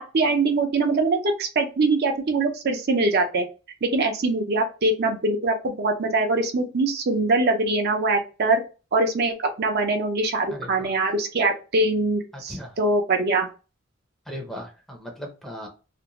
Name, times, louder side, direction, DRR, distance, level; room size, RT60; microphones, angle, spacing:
voice 1, 0.0-3.5 3.8-8.6 8.9-13.5, right 2 dB, 50° right, 3 dB, 0.5 m, -23 dB
voice 2, 10.5-10.9 12.3-12.8 14.3-15.7, equal, ahead, 1 dB, 0.6 m, -37 dB
2.5 x 2.1 x 2.9 m, 0.32 s
head